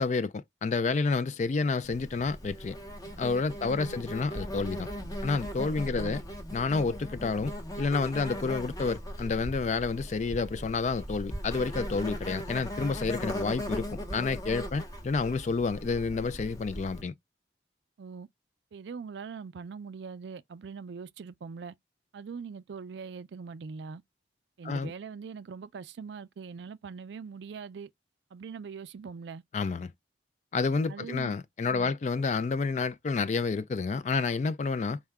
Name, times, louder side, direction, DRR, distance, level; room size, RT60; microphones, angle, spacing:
voice 1, 0.0-2.8 3.2-4.9 5.2-6.2 6.5-13.9 14.1-17.1 24.6-24.9 29.5-29.9 30.5-35.0, left 4 dB, 40° left, 0.3 m, -29 dB
Insect, 1.8-17.0, equal, 20° left, 0.8 m, -38 dB
voice 2, 3.6-4.0 5.8-6.2 18.0-18.3 18.7-21.7 22.1-24.0 24.6-27.9 28.3-29.4 30.9-31.3 31.7-31.9, right 5 dB, 70° right, 0.4 m, -42 dB
4.6 x 2.1 x 3.5 m
head